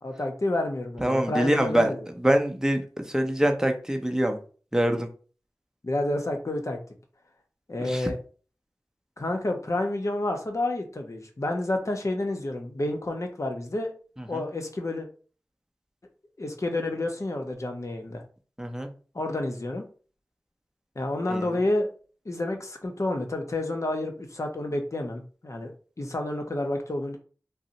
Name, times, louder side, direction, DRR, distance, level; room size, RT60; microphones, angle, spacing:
voice 1, 0.0-2.0 5.8-6.8 7.7-8.2 9.2-13.9 14.3-15.1 16.4-18.2 19.1-19.9 21.0-21.9 22.3-25.7 26.0-27.2, left 2 dB, 50° left, 3 dB, 0.7 m, -29 dB
voice 2, 1.0-4.4 4.7-5.1 7.8-8.1 14.2-14.4 18.6-18.9 21.3-21.6, right 1 dB, 10° right, 4 dB, 0.6 m, -25 dB
2.6 x 2.0 x 3.9 m, 0.39 s
wide cardioid pair, 55°, 7 cm